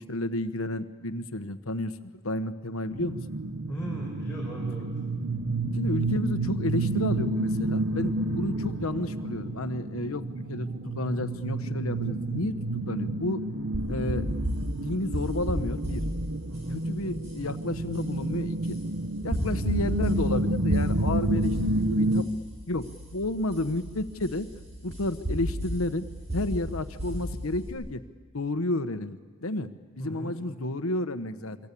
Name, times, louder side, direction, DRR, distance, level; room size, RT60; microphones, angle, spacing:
voice 1, 0.0-3.2 5.7-12.5 12.9-13.4 13.9-14.2 14.8-16.0 16.7-18.8 19.2-22.3 22.7-24.5 24.8-26.0 26.3-28.0 28.3-31.6, left 2 dB, 85° left, 10 dB, 1.2 m, -31 dB
sound 1, 2.9-22.2, right 2 dB, 70° right, 1.0 m, -30 dB
voice 2, 3.7-4.9 16.5-16.8 19.4-19.6 30.0-30.4, right 1 dB, 5° left, -5 dB, 4.9 m, -38 dB
sound 2, 13.7-27.7, equal, 30° right, 6.0 m, -34 dB
26.5 x 24.0 x 8.6 m, 1.4 s
head